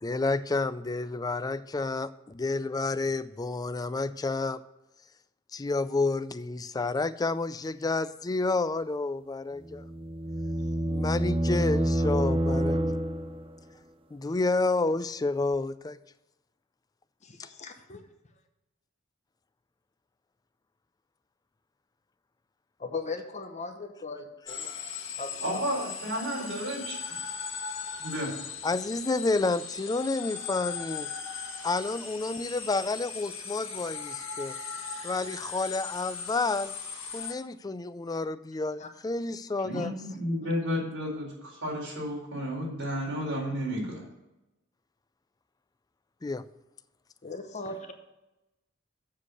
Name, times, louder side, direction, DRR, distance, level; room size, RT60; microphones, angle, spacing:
voice 1, 0.0-4.6 5.5-9.9 10.9-12.8 14.1-16.0 28.6-31.1 31.6-34.5 35.0-36.7 37.1-39.9 46.2-46.4, left 3 dB, 20° left, 13 dB, 0.4 m, -30 dB
sound 1, 9.6-13.6, right 1 dB, 25° right, 0.6 m, -28 dB
voice 2, 17.6-18.0 22.8-25.6 38.8-38.9 39.7-39.9 47.2-47.9, left 3 dB, 35° left, 6 dB, 0.9 m, -38 dB
sound 2, 24.5-37.3, left 6 dB, 85° left, 1.5 m, -38 dB
voice 3, 25.4-27.0 28.0-28.3 39.6-44.0, equal, 65° right, -2 dB, 4.0 m, -32 dB
7.5 x 6.5 x 6.3 m, 0.98 s
head